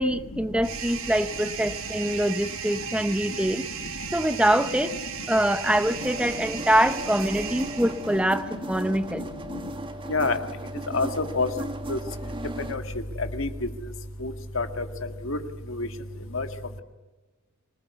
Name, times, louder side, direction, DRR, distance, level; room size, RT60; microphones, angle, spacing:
voice 1, 0.0-3.6 4.1-4.9 5.3-9.3, right 1 dB, 5° right, 11 dB, 0.8 m, -24 dB
sound 1, 0.6-8.4, right 7 dB, 75° right, 3.1 m, -36 dB
sound 2, 5.9-12.8, right 1 dB, 25° right, 1.5 m, -36 dB
voice 2, 10.9-11.5 11.9-12.0 12.7-12.8 13.2-13.5 14.2-14.8 15.2-15.4 15.8-15.9 16.3-16.5, left 3 dB, 70° left, 8 dB, 1.8 m, -26 dB
25.0 x 19.5 x 8.3 m, 1.2 s
head